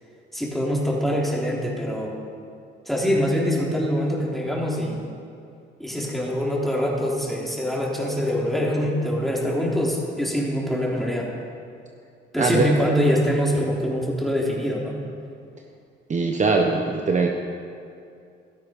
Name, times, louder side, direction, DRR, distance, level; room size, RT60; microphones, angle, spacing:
voice 1, 0.3-2.2 2.9-5.0 5.8-11.3 12.3-15.0, equal, ahead, -3 dB, 3.5 m, -24 dB
voice 2, 12.4-12.7 16.1-17.3, right 4 dB, 35° right, 2 dB, 1.1 m, -21 dB
16.5 x 13.0 x 5.3 m, 2.5 s
cardioid pair, 90°, 20 cm